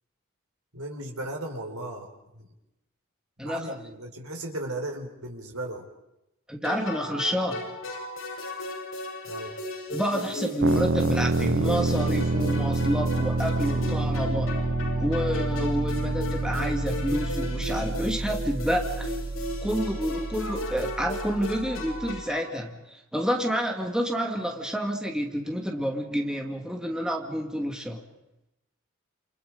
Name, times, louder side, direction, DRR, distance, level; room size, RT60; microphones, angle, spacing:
voice 1, 0.7-2.1 2.3-2.5 3.4-5.8 9.3-9.5, right 1 dB, 85° right, 1 dB, 5.3 m, -36 dB
voice 2, 3.4-3.8 6.5-7.7 9.9-14.6 15.0-19.1 19.6-28.0, equal, 5° right, 2 dB, 2.4 m, -29 dB
sound 1, 6.6-22.6, left 1 dB, 70° left, 7.8 m, -36 dB
sound 2, 10.6-22.2, right 2 dB, 55° right, 0.8 m, -28 dB
28.5 x 28.5 x 5.2 m, 0.88 s
head